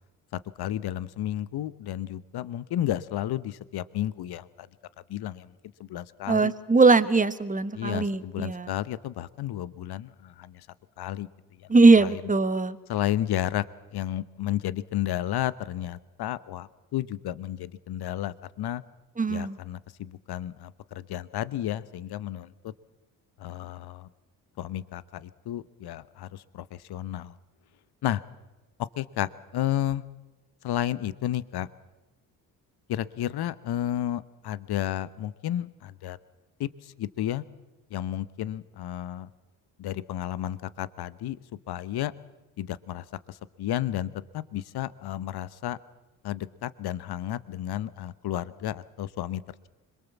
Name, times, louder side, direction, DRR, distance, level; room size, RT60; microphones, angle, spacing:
voice 1, 0.6-4.7 5.1-5.5 5.8-6.5 7.7-10.6 11.0-11.3 11.9-12.2 12.9-13.6 13.9-18.8 19.3-22.5 23.4-24.1 24.6-27.3 28.0-28.2 29.0-30.0 30.6-31.7 32.9-36.2 36.6-36.7 37.0-37.4 37.9-39.3 39.8-41.4 41.7-42.1 42.6-45.8 46.2-49.4, left 12 dB, 50° left, 17 dB, 1.0 m, -32 dB
voice 2, 6.3-8.7 11.7-12.8 19.2-19.6, right 3 dB, 15° right, 12 dB, 1.4 m, -20 dB
25.5 x 22.0 x 7.2 m, 1.1 s
hypercardioid pair, 50°, 48 cm